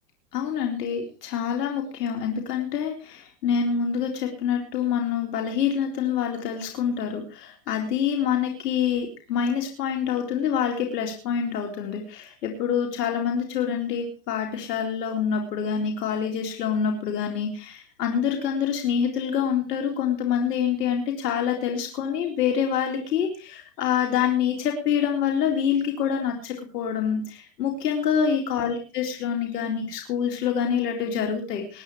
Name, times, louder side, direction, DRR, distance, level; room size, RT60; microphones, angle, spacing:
voice 1, 0.3-31.8, left 7 dB, 70° left, 2 dB, 3.7 m, -26 dB
21.5 x 9.5 x 4.7 m, 0.34 s
supercardioid pair, 140°, 48 cm